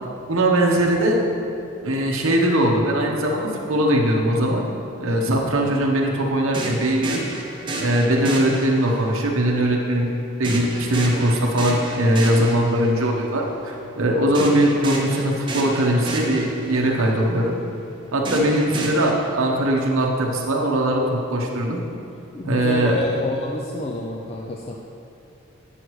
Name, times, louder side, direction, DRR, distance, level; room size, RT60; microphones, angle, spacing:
voice 1, 0.3-1.2 1.8-4.7 5.0-7.2 7.8-10.1 10.4-17.5 18.1-21.8 22.4-23.0, right 1 dB, 70° right, -1 dB, 1.0 m, -20 dB
voice 2, 5.4-5.7 22.3-24.7, left 2 dB, 30° left, -1 dB, 0.4 m, -28 dB
sound 1, 6.5-9.2 10.4-13.1 14.3-17.0 18.2-19.1, right 2 dB, 20° right, 0.7 m, -30 dB
9.8 x 6.4 x 3.1 m, 2.7 s
head